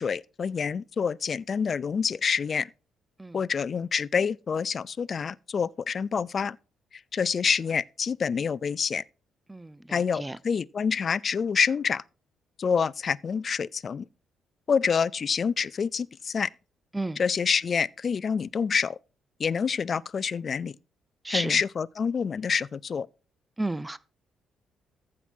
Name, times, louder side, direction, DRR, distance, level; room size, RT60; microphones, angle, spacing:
voice 1, 0.0-2.7 3.3-6.6 7.1-9.0 9.9-12.0 12.6-14.0 14.7-16.5 17.2-19.0 19.4-20.7 21.3-23.1, left 6 dB, 45° left, 0.4 m, -27 dB
voice 2, 9.5-10.4 16.9-17.2 21.2-21.6 23.6-24.0, right 2 dB, 10° right, 0.5 m, -32 dB
14.5 x 6.1 x 4.4 m
cardioid pair, 90°, 0 cm